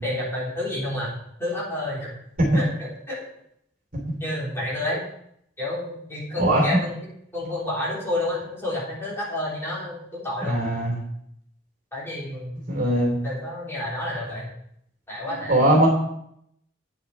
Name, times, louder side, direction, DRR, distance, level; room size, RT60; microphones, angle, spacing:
voice 1, 0.0-1.1 1.4-2.2 2.5-3.2 4.2-5.0 5.6-6.9 7.3-10.6 11.9-12.7 13.2-14.5 15.1-15.6, left 1 dB, 15° left, -7 dB, 3.6 m, -30 dB
voice 2, 10.4-11.0 12.7-13.2 15.3-15.9, right 1 dB, 50° right, -2 dB, 3.0 m, -20 dB
9.2 x 7.2 x 4.2 m, 0.71 s
head